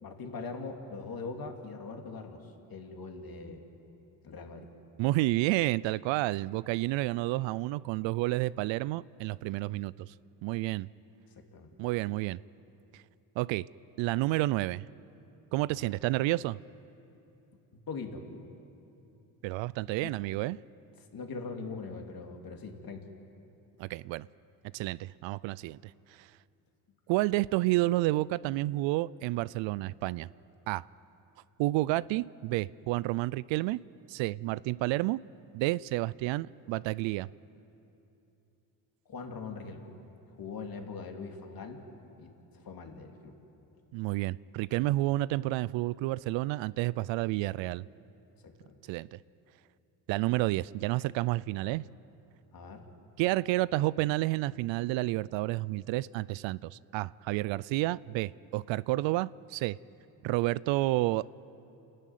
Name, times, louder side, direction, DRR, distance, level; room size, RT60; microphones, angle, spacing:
voice 1, 0.0-3.6 4.2-4.7 11.3-11.7 15.7-15.9 17.9-18.2 20.0-20.1 21.0-23.0 39.1-39.9 40.3-41.8 42.2-43.4 48.4-48.8 51.6-51.7 52.5-52.8, left 4 dB, 50° left, 3 dB, 3.1 m, -42 dB
voice 2, 5.0-10.1 10.4-10.9 11.8-12.4 13.4-13.7 14.0-14.9 15.5-16.6 19.4-20.6 23.8-24.3 24.7-25.9 26.2-26.3 27.1-30.3 30.7-30.9 31.6-33.8 34.1-35.2 35.5-37.3 43.9-47.8 48.9-49.2 50.1-51.8 53.2-59.8 60.2-61.3, right 18 dB, 75° right, 20 dB, 0.5 m, -30 dB
29.5 x 12.0 x 9.3 m, 2.9 s
supercardioid pair, 75°, 46 cm